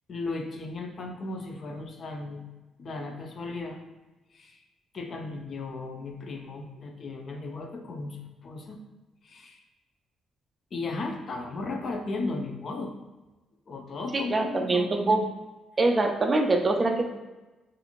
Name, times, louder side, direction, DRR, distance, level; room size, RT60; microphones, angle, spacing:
voice 1, 0.1-2.4 2.8-3.8 4.3-4.6 4.9-8.8 9.2-9.6 10.7-12.9 13.7-15.2, left 3 dB, 50° left, 3 dB, 0.4 m, -35 dB
voice 2, 14.1-15.2 15.8-17.2, right 2 dB, 30° right, 4 dB, 0.3 m, -24 dB
2.5 x 2.4 x 2.9 m, 1.1 s
cardioid pair, 90°, 0 cm